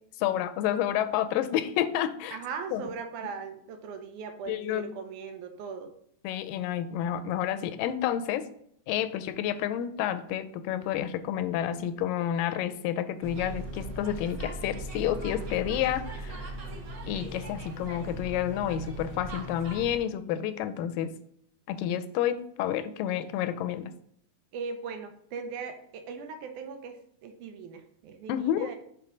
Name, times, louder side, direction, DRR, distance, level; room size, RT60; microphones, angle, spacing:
voice 1, 0.2-2.4 2.7-2.8 4.5-4.9 6.2-8.5 8.9-16.4 17.1-21.1 21.7-23.9 28.3-28.7, left 11 dB, 85° left, 12 dB, 2.2 m, -30 dB
voice 2, 2.3-5.9 24.5-28.8, right 5 dB, 75° right, 6 dB, 2.0 m, -39 dB
sound 1, 13.2-20.0, right 1 dB, 60° right, 1.4 m, -39 dB
5.8 x 4.7 x 5.0 m, 0.69 s
omnidirectional pair, 3.8 m